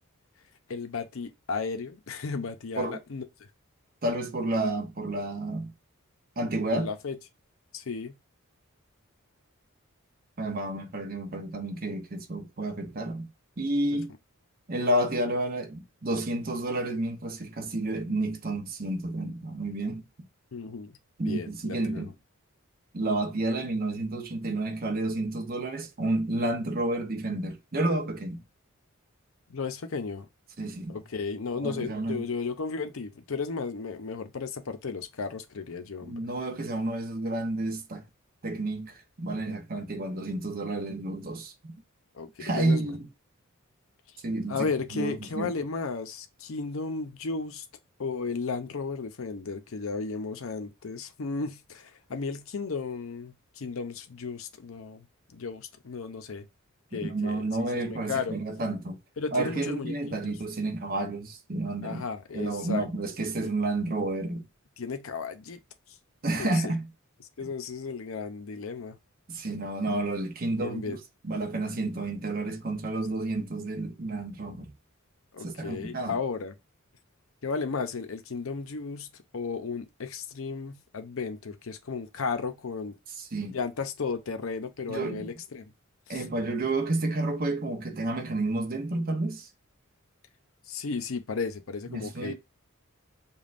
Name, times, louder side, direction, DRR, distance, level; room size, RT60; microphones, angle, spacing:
voice 1, 0.7-3.5 6.7-7.1 7.7-8.2 13.9-14.0 20.5-22.1 29.5-30.3 30.9-36.2 42.1-42.9 44.5-47.6 48.0-55.1 55.3-56.5 56.9-58.4 59.2-60.2 61.8-62.9 64.8-65.6 66.3-66.7 67.4-69.0 70.6-71.0 75.3-76.5 77.4-79.1 79.3-83.0 83.5-85.7 86.1-86.2 90.7-92.3, left 4 dB, 70° left, 0.6 m, -34 dB
voice 2, 4.0-5.7 6.4-6.9 10.4-13.3 13.6-14.1 14.7-20.0 21.2-22.1 22.9-28.4 30.6-31.0 31.6-32.3 36.0-38.0 38.4-41.7 42.4-43.1 44.2-45.5 56.9-59.0 59.3-62.0 62.3-64.4 66.2-66.9 69.3-71.0 71.2-74.7 75.4-76.2 83.2-83.6 84.9-85.3 86.1-89.5 91.9-92.3, right 2 dB, 45° right, 0.8 m, -30 dB
5.2 x 2.3 x 2.5 m
head